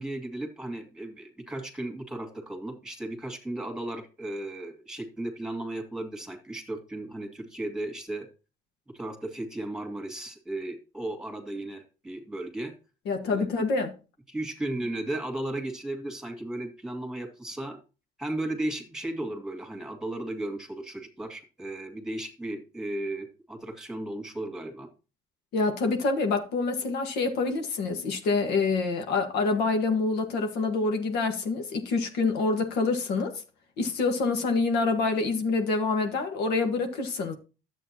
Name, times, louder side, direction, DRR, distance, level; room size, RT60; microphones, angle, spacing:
voice 1, 0.0-8.3 8.9-12.7 13.3-13.5 14.3-17.8 18.2-24.9, right 1 dB, 5° right, 2.2 m, -35 dB
voice 2, 13.1-13.9 25.5-33.4 33.8-37.3, left 3 dB, 80° left, 1.7 m, -26 dB
11.0 x 8.0 x 3.0 m
cardioid pair, 110°, 17 cm